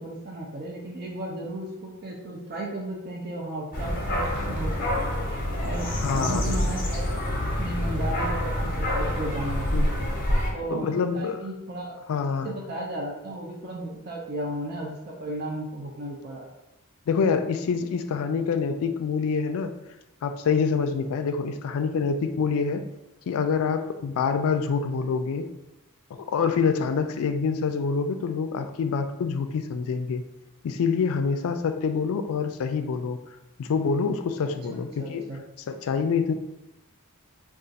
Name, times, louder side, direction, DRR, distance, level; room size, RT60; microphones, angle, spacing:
voice 1, 0.0-5.1 5.6-9.9 10.5-12.0 12.3-16.4 34.7-35.4, right 1 dB, 45° right, -2 dB, 0.5 m, -35 dB
sound 1, 3.7-10.5, left 1 dB, 40° left, 0.7 m, -27 dB
voice 2, 6.0-6.7 9.7-10.1 10.7-11.4 12.1-12.5 17.1-19.7 20.2-22.8 23.3-25.5 26.2-30.2 30.6-33.2 33.6-35.2 35.7-36.3, left 5 dB, 65° left, 8 dB, 0.3 m, -26 dB
2.4 x 2.3 x 3.9 m, 0.90 s
head